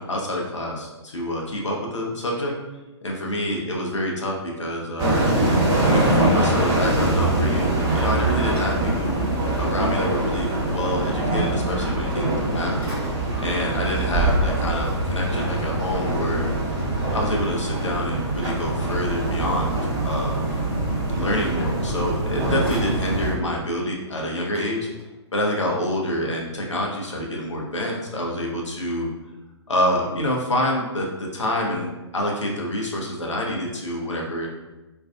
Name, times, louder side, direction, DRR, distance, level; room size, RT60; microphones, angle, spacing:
voice 1, 0.0-2.5 3.0-5.2 5.8-9.2 9.6-12.8 13.4-16.5 17.1-19.7 20.0-20.5 21.1-24.8 25.3-29.1 29.7-34.5, left 1 dB, 80° left, -2 dB, 0.6 m, -27 dB
sound 1, 5.0-23.3, right 1 dB, 20° right, 1.0 m, -23 dB
sound 2, 8.4-9.3 9.8-9.9 12.2-12.5 12.8-13.6 18.3-19.6 21.7-21.8 22.1-23.4 23.8-23.9 24.1-25.4, equal, 10° left, 0.9 m, -43 dB
2.5 x 2.3 x 2.3 m, 1.1 s
figure-of-eight pair, 125°, 15 cm